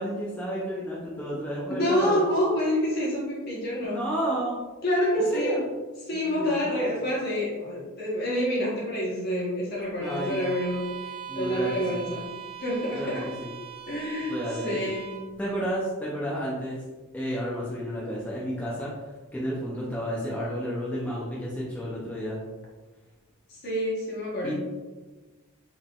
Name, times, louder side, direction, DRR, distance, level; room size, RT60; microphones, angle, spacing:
voice 1, 0.0-2.2 3.8-4.6 5.2-5.7 6.1-6.9 10.0-10.4 11.3-12.0 12.9-13.1 13.4-13.5 14.3-14.9 15.4-16.8 17.1-18.9 19.3-22.4 24.4-24.5, equal, 5° left, -7 dB, 0.5 m, -31 dB
voice 2, 1.6-4.1 4.8-5.6 6.1-13.3 13.9-14.4 14.6-15.1 23.5-24.5, equal, 45° left, -4 dB, 1.1 m, -28 dB
Bowed string instrument, 10.0-15.3, right 9 dB, 20° right, 1.0 m, -41 dB
3.7 x 3.7 x 2.4 m, 1.3 s
head